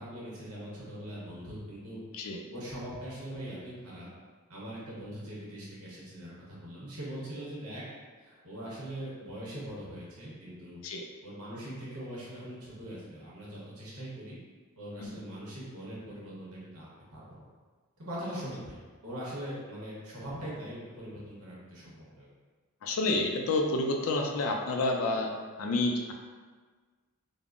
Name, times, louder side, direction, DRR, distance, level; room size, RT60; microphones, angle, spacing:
voice 1, 0.0-2.0 2.5-4.1 4.5-7.8 8.2-10.8 11.2-14.4 14.8-17.5 18.0-18.8 19.0-22.3, right 1 dB, 80° right, -7 dB, 1.0 m, -41 dB
voice 2, 22.8-25.3 25.6-26.1, left 2 dB, 65° left, 2 dB, 0.4 m, -29 dB
3.5 x 2.0 x 2.4 m, 1.5 s
head